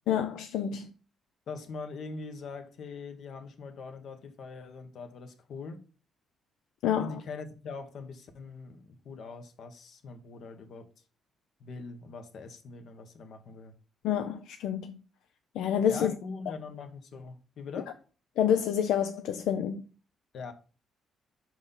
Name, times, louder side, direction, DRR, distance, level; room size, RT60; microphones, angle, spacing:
voice 1, 0.1-0.9 6.8-7.2 14.0-15.0 15.5-16.1 18.4-19.9, left 9 dB, 90° left, 0.5 m, -28 dB
voice 2, 1.5-5.9 7.0-10.9 11.6-13.7 15.9-17.9 20.3-20.5, left 4 dB, 65° left, 1.2 m, -42 dB
5.5 x 4.6 x 5.7 m
cardioid pair, 90°, 0 cm